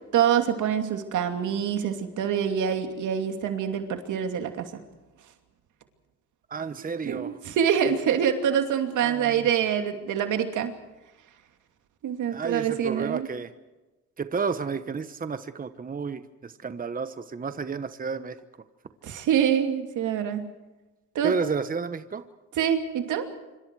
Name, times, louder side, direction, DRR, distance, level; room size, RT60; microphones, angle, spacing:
voice 1, 0.1-4.7 7.0-10.7 12.0-13.3 19.0-20.5 21.1-21.3 22.6-23.3, right 8 dB, 80° right, 5 dB, 2.8 m, -25 dB
voice 2, 6.5-7.4 9.0-9.5 12.3-13.5 14.2-18.4 21.2-22.2, right 5 dB, 30° right, 11 dB, 1.1 m, -31 dB
26.5 x 26.0 x 4.8 m, 1.1 s
cardioid pair, 90°, 30 cm